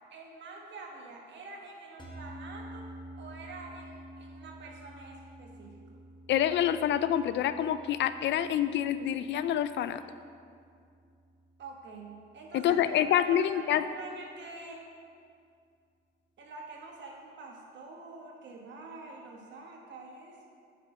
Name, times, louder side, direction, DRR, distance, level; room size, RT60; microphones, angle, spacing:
voice 1, 0.1-5.8 11.6-14.8 16.4-20.4, right 3 dB, 65° right, 0 dB, 1.4 m, -46 dB
sound 1, 2.0-12.4, right 1 dB, 25° left, 1.2 m, -50 dB
voice 2, 6.3-10.0 12.5-13.8, left 10 dB, 65° left, 12 dB, 0.4 m, -27 dB
6.9 x 4.2 x 6.2 m, 2.3 s
cardioid pair, 90°, 20 cm